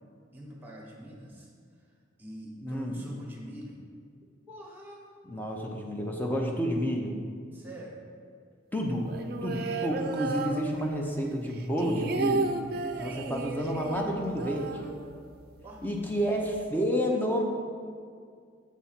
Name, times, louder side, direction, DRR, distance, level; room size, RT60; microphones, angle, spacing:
voice 1, 0.3-1.5 2.2-3.8 4.5-5.1 7.5-8.0 9.6-10.2 15.6-15.8, equal, 10° right, -2 dB, 1.2 m, -45 dB
voice 2, 2.6-3.0 5.2-7.2 8.7-9.1 9.4-12.6 12.9-14.9 15.8-17.4, equal, 10° left, 0 dB, 0.7 m, -30 dB
sound 1, 9.0-11.2 11.5-15.4 15.7-15.8 16.1-16.6, right 3 dB, 50° right, 0.4 m, -33 dB
7.2 x 4.2 x 5.9 m, 2.1 s
head